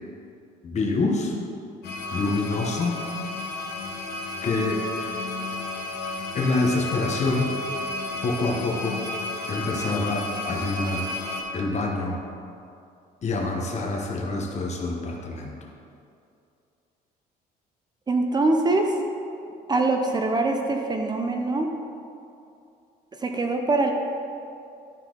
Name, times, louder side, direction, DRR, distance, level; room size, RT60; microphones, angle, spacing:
voice 1, 0.6-1.3 2.1-3.0 4.4-4.8 6.3-7.5 8.2-9.0 9.5-11.1 11.5-12.2 13.2-15.6, left 3 dB, 40° left, 0 dB, 1.3 m, -26 dB
sound 1, 1.8-11.4, left 2 dB, 75° left, 1.1 m, -32 dB
voice 2, 18.1-18.9 19.7-21.7 23.2-23.9, right 2 dB, 25° right, 3 dB, 0.7 m, -23 dB
12.0 x 4.3 x 3.9 m, 2.6 s
cardioid pair, 110°, 17 cm